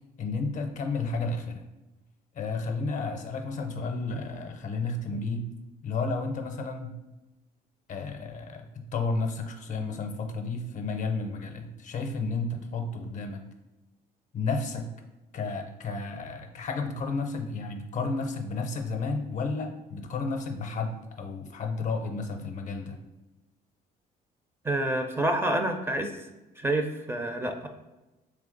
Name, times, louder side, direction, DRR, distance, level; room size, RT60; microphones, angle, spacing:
voice 1, 0.2-1.7 2.3-5.5 5.8-7.0 7.9-13.4 14.3-14.9 15.3-23.0, left 3 dB, 50° left, 5 dB, 0.6 m, -32 dB
voice 2, 24.6-26.1 26.6-27.7, right 1 dB, 15° right, 5 dB, 0.4 m, -28 dB
3.4 x 3.1 x 3.8 m, 1.0 s
cardioid pair, 110°, 17 cm